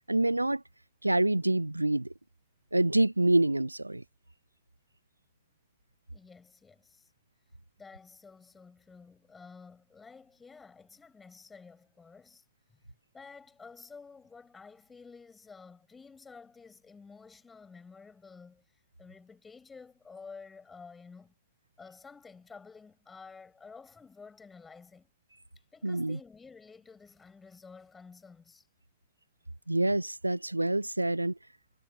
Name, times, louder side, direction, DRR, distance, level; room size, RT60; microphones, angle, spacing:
voice 1, 0.1-0.6 1.0-2.1 2.7-4.0 25.8-26.2 29.7-31.4, right 2 dB, 85° right, 1.0 m, -26 dB
voice 2, 6.1-7.1 7.8-12.4 13.1-18.6 19.0-21.3 21.8-25.1 25.7-28.7, left 5 dB, 15° left, 5.8 m, -51 dB
figure-of-eight pair, 90°, 0 cm